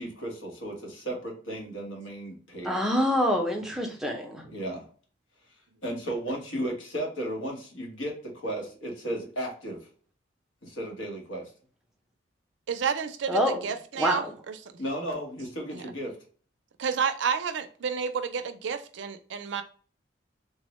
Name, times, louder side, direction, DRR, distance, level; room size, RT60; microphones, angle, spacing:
voice 1, 0.0-2.7 4.4-4.9 5.8-9.8 10.6-11.5 14.8-16.2, right 1 dB, 90° left, 0 dB, 1.1 m, -34 dB
voice 2, 2.6-4.5 13.3-13.6 14.0-14.3, equal, ahead, 0 dB, 0.5 m, -26 dB
voice 3, 12.7-14.5 15.7-15.8 16.8-19.6, right 6 dB, 75° right, 9 dB, 0.4 m, -30 dB
3.4 x 2.1 x 3.0 m, 0.42 s
head